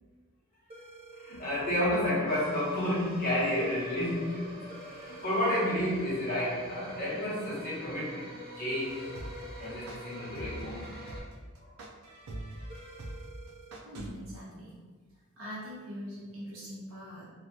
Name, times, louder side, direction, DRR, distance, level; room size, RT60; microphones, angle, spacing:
sound 1, 0.7-1.7 4.7-5.7 8.7-9.7 12.7-13.7, right 3 dB, 25° right, 0.5 m, -50 dB
voice 1, 1.2-4.7 4.9-8.3 8.5-9.1 9.6-11.0 11.6-11.7, left 1 dB, 40° left, -8 dB, 1.0 m, -31 dB
sound 2, 2.3-11.2, equal, 45° right, 1.2 m, -46 dB
sound 3, 8.9-14.1, right 1 dB, 85° right, 0.5 m, -43 dB
voice 2, 13.8-14.7 15.1-17.3, equal, 65° right, -8 dB, 1.3 m, -43 dB
3.1 x 2.3 x 2.7 m, 1.4 s
head